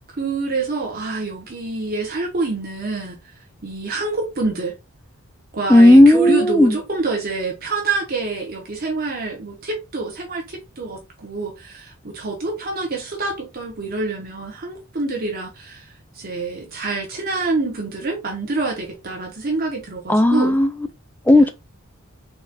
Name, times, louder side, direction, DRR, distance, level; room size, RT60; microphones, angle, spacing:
voice 1, 0.1-3.2 3.6-4.7 5.5-20.5, right 3 dB, 45° right, 0.8 m, -26 dB
voice 2, 5.7-6.8 20.1-20.7 21.3-21.5, left 1 dB, 10° left, 0.4 m, -12 dB
4.0 x 3.8 x 2.2 m
head